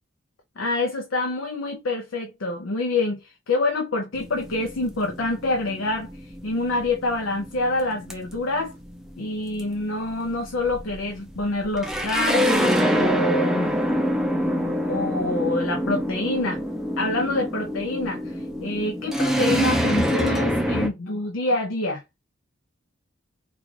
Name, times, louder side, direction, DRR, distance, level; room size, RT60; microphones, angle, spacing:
voice 1, 0.6-6.1 6.4-8.7 9.2-13.7 14.8-16.6 17.0-18.2 18.6-22.0, left 2 dB, 75° left, 0.6 m, -26 dB
sound 1, 4.1-20.9, equal, ahead, 0.5 m, -26 dB
3.7 x 2.4 x 3.2 m
head